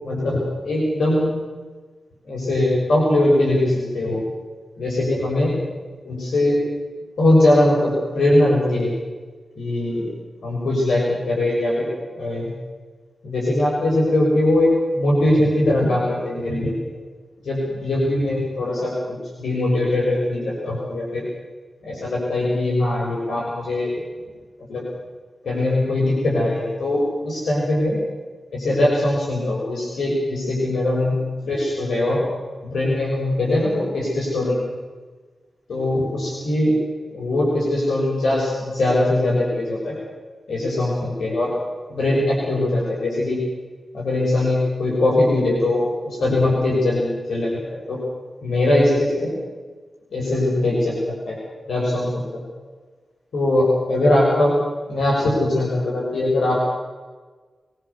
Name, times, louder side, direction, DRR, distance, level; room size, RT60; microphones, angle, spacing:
voice 1, 0.0-1.3 2.3-4.2 4.8-5.6 6.0-6.6 7.2-8.9 9.6-10.1 10.4-11.9 12.1-12.5 13.2-16.7 17.4-21.2 21.8-23.9 24.7-24.8 25.4-28.0 28.5-31.2 31.5-32.2 32.6-34.6 35.7-36.7 37.1-39.9 40.5-41.5 41.9-43.4 43.9-48.0 48.4-49.3 50.1-51.3 51.7-52.3 53.3-54.5 54.9-56.6, left 1 dB, 85° left, -4 dB, 6.7 m, -21 dB
23.0 x 22.0 x 7.1 m, 1.4 s
cardioid pair, 55°, 0 cm